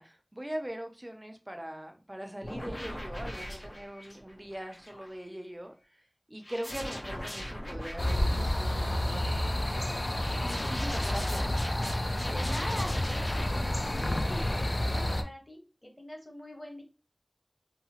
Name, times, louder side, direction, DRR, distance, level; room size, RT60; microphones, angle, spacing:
voice 1, 0.0-6.0 6.3-10.1 10.4-11.6, right 1 dB, 25° right, 0.5 m, -41 dB
sound 1, 2.4-5.2 6.4-8.8 10.2-13.7 13.9-14.5, equal, 85° left, 1.0 m, -40 dB
sound 2, 8.0-15.2, left 1 dB, 60° left, 0.3 m, -30 dB
voice 2, 12.3-16.8, equal, 30° left, 0.9 m, -43 dB
2.8 x 2.4 x 2.8 m
wide cardioid pair, 45°, 0 cm